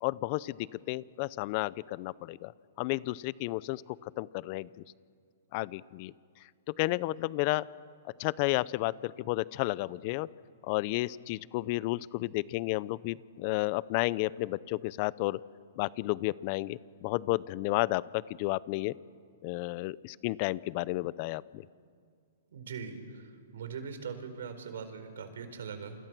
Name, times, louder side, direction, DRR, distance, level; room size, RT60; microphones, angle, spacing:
voice 1, 0.0-2.5 2.8-3.8 4.2-4.7 5.5-6.1 6.8-7.6 8.2-10.3 10.6-15.4 15.8-18.9 19.4-21.6, left 20 dB, 45° left, 20 dB, 0.6 m, -32 dB
voice 2, 22.5-23.2 23.5-26.0, right 6 dB, 75° right, 9 dB, 4.5 m, -41 dB
30.0 x 28.5 x 6.2 m, 2.1 s
hypercardioid pair, 135°, 0 cm